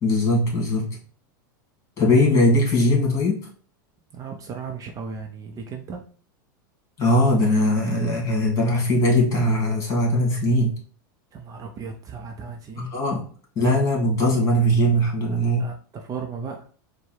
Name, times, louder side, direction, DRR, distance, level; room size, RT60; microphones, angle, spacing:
voice 1, 0.0-0.9 2.0-3.4 7.0-10.7 12.8-13.2 13.6-15.7, left 1 dB, 30° left, -1 dB, 2.4 m, -20 dB
voice 2, 4.1-6.0 11.3-12.9 15.6-16.6, right 5 dB, 30° right, 3 dB, 0.7 m, -35 dB
4.5 x 2.3 x 4.6 m, 0.43 s
hypercardioid pair, 105°, 11 cm